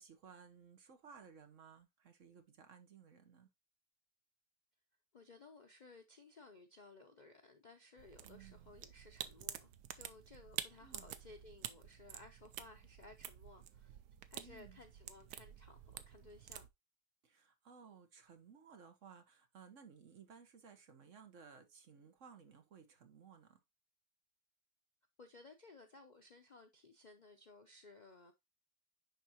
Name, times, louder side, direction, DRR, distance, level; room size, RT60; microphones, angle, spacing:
voice 1, 0.0-3.5 8.2-8.7 10.8-11.1 14.4-14.8 17.2-23.6, right 6 dB, 50° right, 1.3 m, -59 dB
voice 2, 5.1-14.0 14.3-16.7 25.2-28.3, left 3 dB, 80° left, 0.4 m, -59 dB
sound 1, 8.0-16.7, right 11 dB, 90° right, 1.2 m, -49 dB
10.5 x 3.5 x 2.9 m
omnidirectional pair, 1.8 m